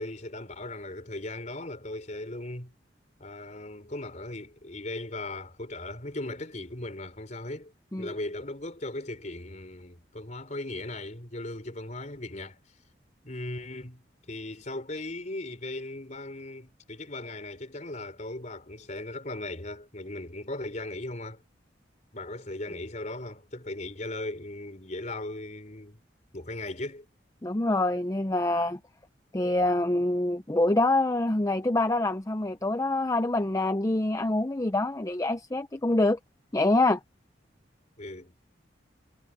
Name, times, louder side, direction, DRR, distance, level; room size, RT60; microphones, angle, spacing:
voice 1, 0.0-2.7 3.2-7.7 8.0-12.6 13.2-21.4 22.1-26.0 26.3-27.1 38.0-38.5, left 2 dB, 40° left, 4.1 m, -38 dB
voice 2, 27.4-28.8 29.3-36.2 36.5-37.0, left 2 dB, 20° left, 0.6 m, -25 dB
head